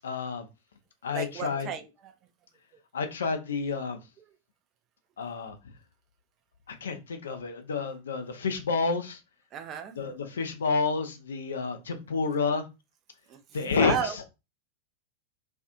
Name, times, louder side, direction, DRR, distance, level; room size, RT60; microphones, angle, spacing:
voice 1, 0.0-0.5 1.0-1.7 2.9-4.0 5.2-5.6 6.7-9.2 9.9-12.6 13.5-14.2, left 4 dB, 65° left, 0.4 m, -29 dB
voice 2, 1.1-1.8 9.5-9.9 13.3-14.2, right 8 dB, 35° right, 0.4 m, -34 dB
2.5 x 2.4 x 2.4 m
figure-of-eight pair, 90°, 0 cm